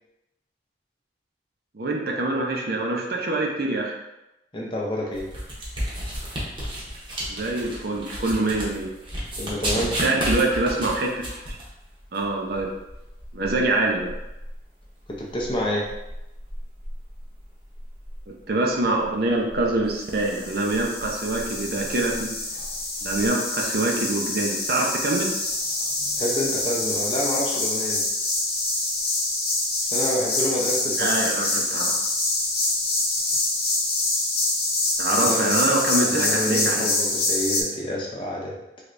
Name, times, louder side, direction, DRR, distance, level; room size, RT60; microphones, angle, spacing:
voice 1, 1.7-3.9 7.3-8.9 10.0-11.1 11.5-11.6 12.1-12.7 13.3-14.1 18.5-22.3 23.0-25.3 31.0-31.9 35.0-36.8, right 2 dB, 55° right, 0 dB, 0.5 m, -25 dB
voice 2, 4.5-5.3 9.4-9.9 15.2-15.9 26.2-28.1 29.8-31.1 35.1-35.6 36.0-38.6, left 1 dB, 25° left, -2 dB, 0.5 m, -28 dB
sound 1, 5.1-23.3, equal, 25° right, 0.8 m, -34 dB
sound 2, 20.1-37.6, left 2 dB, 55° left, 0.8 m, -26 dB
3.3 x 3.1 x 2.5 m, 0.94 s
head